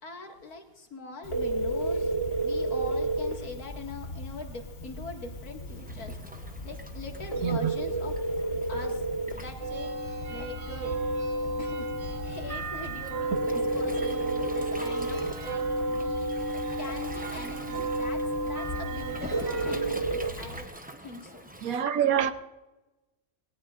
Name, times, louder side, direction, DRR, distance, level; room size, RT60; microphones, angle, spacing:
voice 1, 0.0-2.1 2.4-6.2 6.6-8.2 8.7-9.0 9.3-9.9 10.3-11.0 11.6-16.3 16.8-20.0 20.4-20.7 21.0-21.5 21.8-22.1, left 2 dB, 85° left, 2.5 m, -42 dB
Telephone, 1.2-20.6, right 2 dB, 45° left, 1.6 m, -33 dB
Waves surf, 5.7-21.7, right 1 dB, 10° right, 0.6 m, -46 dB
voice 2, 7.4-7.7 21.6-22.3, right 9 dB, 75° right, 1.3 m, -25 dB
sound 1, 9.6-19.7, right 1 dB, 50° right, 1.4 m, -33 dB
20.5 x 18.0 x 2.5 m
omnidirectional pair, 1.5 m